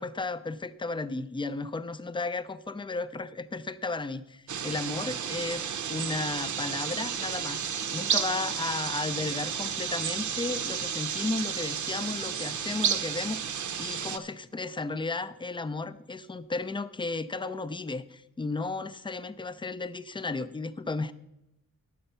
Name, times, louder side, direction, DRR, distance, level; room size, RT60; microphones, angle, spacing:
voice 1, 0.0-21.1, left 3 dB, 15° left, 14 dB, 0.4 m, -34 dB
sound 1, 4.5-14.2, right 7 dB, 65° right, 0.6 m, -32 dB
10.5 x 7.9 x 5.5 m, 0.87 s
wide cardioid pair, 150°, 32 cm